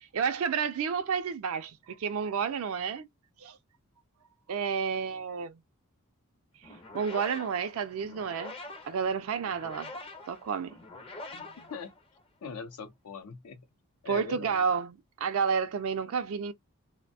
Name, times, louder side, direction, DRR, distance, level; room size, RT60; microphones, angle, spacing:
voice 1, 0.0-3.1 3.4-3.6 4.5-5.6 6.9-8.5 8.8-9.9 10.3-10.7 11.4-11.5 14.1-16.5, right 6 dB, 65° right, 0.4 m, -30 dB
sound 1, 6.6-12.5, left 2 dB, 25° left, 0.4 m, -45 dB
voice 2, 11.3-11.9 12.4-13.7 14.0-14.6, left 5 dB, 85° left, 0.5 m, -42 dB
2.5 x 2.1 x 2.6 m
head